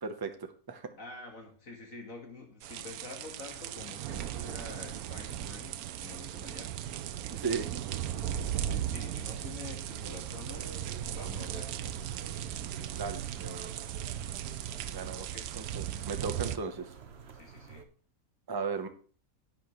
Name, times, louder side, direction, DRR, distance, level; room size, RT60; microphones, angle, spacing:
voice 1, 0.0-0.9 7.3-7.7 12.9-13.7 14.9-15.2 15.6-16.9 18.5-18.9, right 5 dB, 20° right, 7 dB, 0.7 m, -36 dB
voice 2, 1.0-6.8 7.0-7.3 8.3-10.8 11.1-12.2 15.2-15.5 17.3-17.9, left 3 dB, 65° left, 2 dB, 2.1 m, -48 dB
sound 1, 2.6-16.6, right 11 dB, 85° right, 1.1 m, -37 dB
sound 2, 9.9-17.8, right 5 dB, 50° right, 1.1 m, -49 dB
11.0 x 8.6 x 3.1 m, 0.40 s
omnidirectional pair, 1.5 m